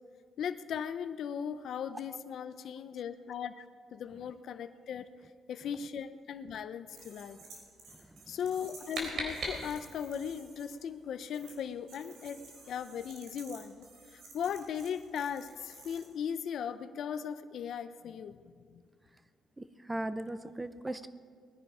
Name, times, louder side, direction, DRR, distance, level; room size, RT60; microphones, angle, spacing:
voice 1, 0.4-3.6 3.9-5.1 5.5-7.4 8.3-12.4 12.7-18.4 18.7-18.8, left 8 dB, 70° left, 11 dB, 0.6 m, -38 dB
sound 1, 6.9-10.7 11.3-11.5 11.9-16.0, right 3 dB, 85° right, 3.7 m, -54 dB
voice 2, 7.9-8.4 19.6-21.1, right 1 dB, 15° right, 12 dB, 0.6 m, -39 dB
sound 2, 8.4-10.1, right 2 dB, 65° right, 3.7 m, -39 dB
20.0 x 10.5 x 4.9 m, 2.1 s
cardioid pair, 90°, 0 cm